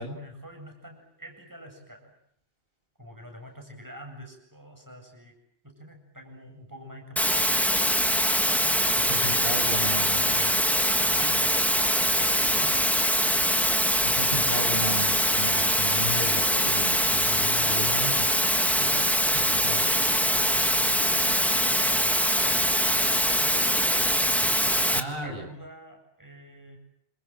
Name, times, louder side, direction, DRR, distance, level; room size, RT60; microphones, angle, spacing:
voice 1, 0.2-2.2 3.0-5.4 5.6-7.7 8.9-9.5 10.1-13.0 18.8-23.7 24.3-26.8, equal, 20° right, 3 dB, 8.1 m, -46 dB
sound 1, 7.2-25.0, equal, ahead, 1.7 m, -23 dB
voice 2, 9.1-10.5 14.2-18.4 19.4-19.9 24.9-25.5, equal, 60° right, 3 dB, 7.0 m, -34 dB
28.5 x 28.0 x 7.6 m, 0.71 s
omnidirectional pair, 1.1 m